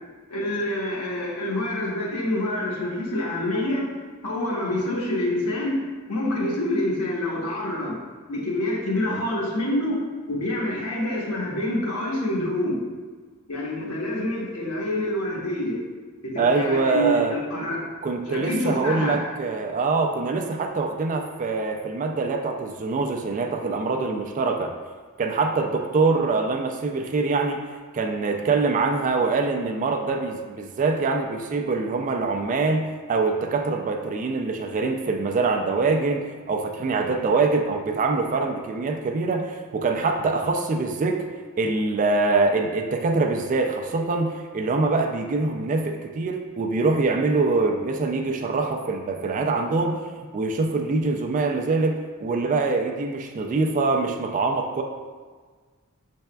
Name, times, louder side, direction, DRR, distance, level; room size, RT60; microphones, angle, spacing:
voice 1, 0.3-3.9 4.2-5.8 6.1-8.0 8.3-10.0 10.3-12.8 13.5-15.8 16.2-17.8 18.3-19.2, left 1 dB, 85° left, -4 dB, 1.1 m, -27 dB
voice 2, 16.4-17.3 18.0-24.7 25.2-27.6 27.9-32.8 33.1-41.2 41.6-50.0 50.3-54.8, right 3 dB, 35° right, 4 dB, 0.3 m, -24 dB
6.5 x 3.4 x 2.2 m, 1.5 s
head